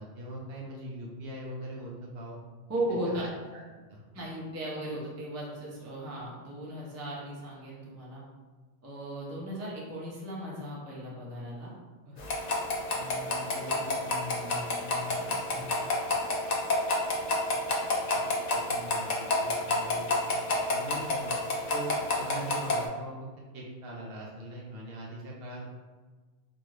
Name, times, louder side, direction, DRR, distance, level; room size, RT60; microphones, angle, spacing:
voice 1, 0.0-2.4 3.1-3.3 3.5-3.6 3.9-4.0 18.1-20.2 20.7-21.4 21.7-25.7, right 1 dB, 65° right, -3 dB, 0.7 m, -41 dB
voice 2, 2.7-3.2 4.1-8.2 8.8-11.8 12.0-12.2 12.5-12.6 12.9-15.7, right 1 dB, 20° right, -5 dB, 0.4 m, -37 dB
sound 1, 12.2-22.8, left 2 dB, 60° left, 0.4 m, -30 dB
2.5 x 2.3 x 3.1 m, 1.4 s
omnidirectional pair, 1.2 m